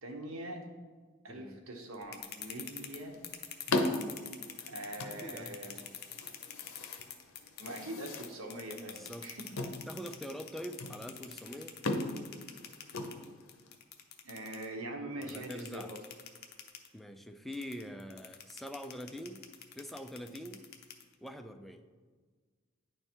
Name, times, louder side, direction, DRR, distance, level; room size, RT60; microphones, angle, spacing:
voice 1, 0.0-0.7 1.2-3.2 4.7-5.8 7.6-9.5 14.2-16.0, right 1 dB, 85° right, 3 dB, 1.0 m, -43 dB
voice 2, 1.3-1.6 5.0-6.0 8.9-9.3 9.9-11.7 15.2-15.9 16.9-19.4 19.7-20.6 21.2-21.8, equal, ahead, 6 dB, 0.3 m, -44 dB
sound 1, 1.9-7.8 8.1-14.7 15.2-16.9 17.5-21.3, left 9 dB, 50° left, 0.6 m, -45 dB
sound 2, 2.7-13.8, left 2 dB, 85° left, 0.7 m, -39 dB
9.6 x 3.3 x 4.4 m, 1.5 s
head